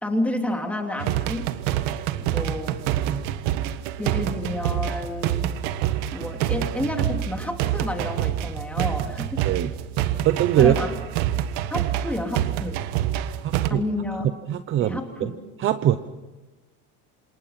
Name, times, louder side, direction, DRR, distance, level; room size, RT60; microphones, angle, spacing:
voice 1, 0.0-1.5 2.2-2.8 4.0-5.5 6.1-9.4 10.6-10.9 11.7-12.8 13.7-14.3 14.8-15.4, left 1 dB, 5° left, 2 dB, 2.8 m, -30 dB
sound 1, 1.0-13.7, right 12 dB, 85° right, 1.6 m, -27 dB
voice 2, 10.2-10.7 13.4-13.8 14.5-15.3 15.6-16.0, right 12 dB, 35° right, 11 dB, 0.8 m, -22 dB
28.5 x 27.5 x 5.8 m, 1.1 s
cardioid pair, 180°, 36 cm